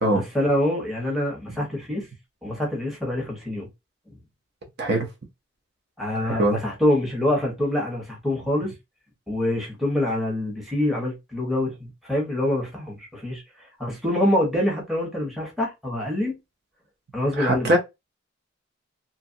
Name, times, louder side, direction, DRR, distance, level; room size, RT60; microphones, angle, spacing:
voice 1, 0.1-2.1 2.4-3.7 4.1-4.2 6.0-8.7 9.3-13.4 13.8-16.4 17.1-17.7, left 1 dB, ahead, 1.0 m, -25 dB
voice 2, 6.2-6.6 17.4-17.8, right 1 dB, 55° right, 0.7 m, -21 dB
2.8 x 2.5 x 2.6 m
head